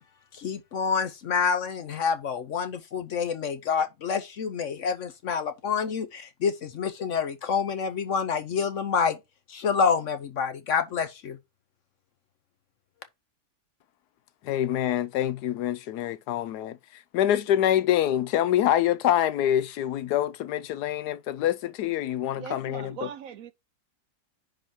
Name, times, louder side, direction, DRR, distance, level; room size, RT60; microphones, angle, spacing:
voice 1, 0.3-9.2 9.5-11.4, left 6 dB, 60° left, 0.9 m, -27 dB
voice 2, 14.4-16.8 17.1-22.9, left 11 dB, 75° left, 1.1 m, -25 dB
voice 3, 22.3-23.5, right 8 dB, 65° right, 0.9 m, -40 dB
10.0 x 3.9 x 4.3 m
omnidirectional pair, 1.8 m